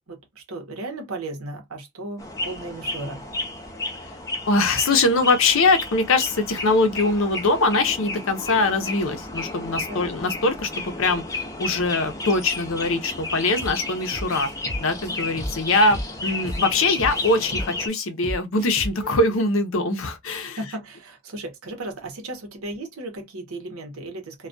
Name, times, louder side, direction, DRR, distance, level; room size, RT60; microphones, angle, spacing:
voice 1, 0.1-3.2 9.9-10.1 20.6-24.5, right 2 dB, 85° right, 0.8 m, -35 dB
sound 1, 2.2-17.9, left 2 dB, 15° left, 0.5 m, -32 dB
voice 2, 4.5-11.2 11.6-14.5 14.8-20.6, left 2 dB, 70° left, 0.6 m, -22 dB
sound 2, 13.6-13.8 14.1-16.6 17.0-19.1, equal, 35° right, 0.9 m, -33 dB
2.2 x 2.2 x 2.4 m
head